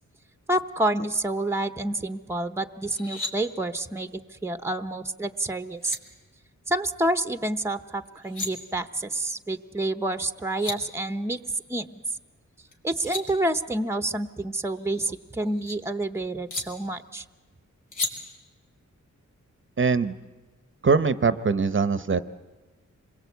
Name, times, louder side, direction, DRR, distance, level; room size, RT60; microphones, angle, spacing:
voice 1, 0.5-6.0 6.7-11.4 11.7-11.9 12.8-17.2, right 1 dB, 10° right, 10 dB, 0.8 m, -28 dB
sound 1, 2.8-3.3 5.4-5.5 5.8-6.0 8.1-8.5 10.2-10.3 10.4-10.8 12.7-13.2 14.7-15.7 16.5-16.6 17.9-18.1, left 2 dB, 80° left, 3.5 m, -33 dB
voice 2, 19.8-20.1 20.8-22.2, right 5 dB, 40° right, 12 dB, 0.8 m, -22 dB
26.5 x 22.0 x 8.2 m, 1.3 s
wide cardioid pair, 110°, 30 cm